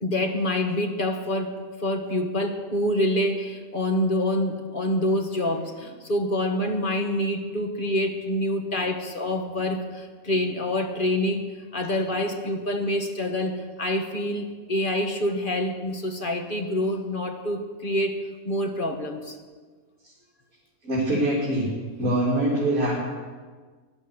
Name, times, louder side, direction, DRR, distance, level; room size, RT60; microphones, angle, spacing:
voice 1, 0.0-11.5 11.7-18.1 18.4-19.4, left 1 dB, 35° left, 4 dB, 1.5 m, -26 dB
voice 2, 20.8-21.7 22.0-23.0, right 1 dB, 65° right, -5 dB, 3.7 m, -23 dB
17.0 x 11.5 x 6.4 m, 1.4 s
omnidirectional pair, 1.5 m